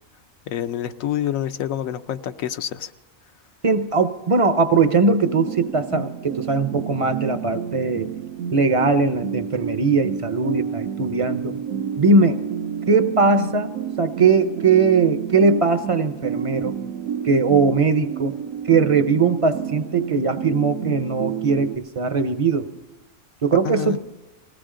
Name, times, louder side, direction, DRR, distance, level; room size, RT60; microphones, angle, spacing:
voice 1, 0.5-2.9 23.6-24.0, left 11 dB, 80° left, 11 dB, 1.1 m, -27 dB
voice 2, 3.6-8.1 8.5-11.6 12.0-12.4 12.9-13.7 14.0-16.8 17.2-18.3 18.7-22.7 23.4-24.0, right 4 dB, 40° right, 10 dB, 0.5 m, -20 dB
sound 1, 5.2-21.8, right 8 dB, 80° right, 1.1 m, -30 dB
20.0 x 16.5 x 3.8 m, 1.1 s
omnidirectional pair, 1.4 m